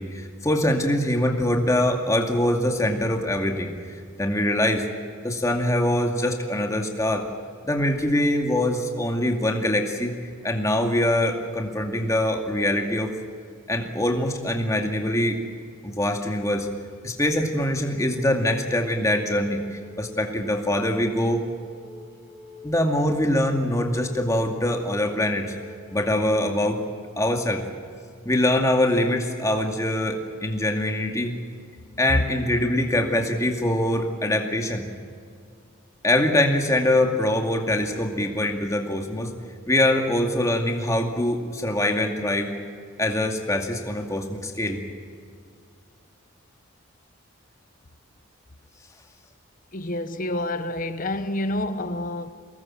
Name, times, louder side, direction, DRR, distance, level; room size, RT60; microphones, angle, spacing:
voice 1, 0.0-3.7 4.2-4.9 5.2-7.2 7.6-10.1 10.4-13.1 13.7-15.4 15.8-16.7 17.0-21.4 22.6-25.5 25.9-26.8 27.2-27.6 28.2-31.3 32.0-34.9 36.0-39.3 39.7-42.5 43.0-44.8, left 1 dB, 15° left, 2.3 m, -23 dB
Wind instrument woodwind instrument, 18.1-26.6, left 2 dB, ahead, 4.4 m, -46 dB
voice 2, 49.7-52.3, left 1 dB, 40° left, 1.0 m, -28 dB
24.0 x 19.5 x 7.7 m
head